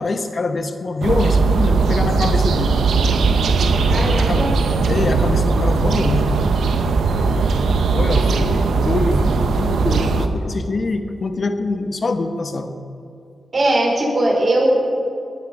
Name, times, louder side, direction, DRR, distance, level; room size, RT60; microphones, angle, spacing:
voice 1, 0.0-2.9 4.2-4.5 4.8-6.3 7.9-12.7, left 3 dB, 55° left, 8 dB, 1.2 m, -24 dB
sound 1, 1.0-10.3, right 4 dB, 85° right, 0.9 m, -18 dB
voice 2, 3.8-4.5 8.1-8.3 13.5-14.7, right 1 dB, 55° right, -2 dB, 4.7 m, -20 dB
19.5 x 10.5 x 5.3 m, 2.6 s
cardioid pair, 55°, 0 cm